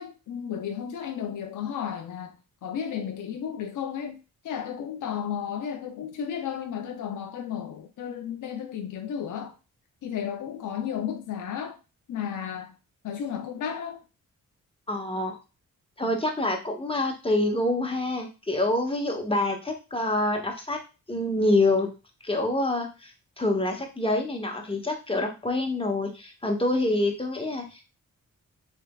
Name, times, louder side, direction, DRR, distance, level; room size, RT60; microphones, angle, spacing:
voice 1, 0.0-9.6 10.0-11.8 12.1-12.8 13.0-14.0, left 8 dB, 60° left, 0.5 m, -33 dB
voice 2, 14.9-15.4 16.0-20.8 21.1-21.9 22.2-27.8, left 2 dB, 15° left, 0.9 m, -26 dB
3.4 x 3.3 x 2.3 m
cardioid pair, 55°, 35 cm